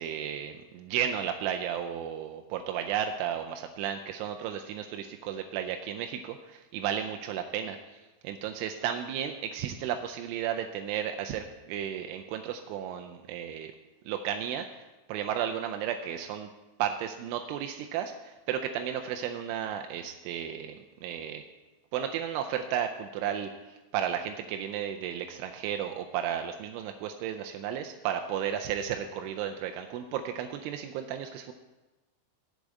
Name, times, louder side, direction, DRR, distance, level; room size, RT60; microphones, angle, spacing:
voice 1, 0.0-8.0 8.2-13.7 14.1-14.8 15.1-16.5 16.8-21.4 21.9-23.5 23.9-31.5, right 9 dB, 85° right, 5 dB, 2.8 m, -33 dB
8.3 x 6.3 x 8.0 m, 1.1 s
omnidirectional pair, 5.7 m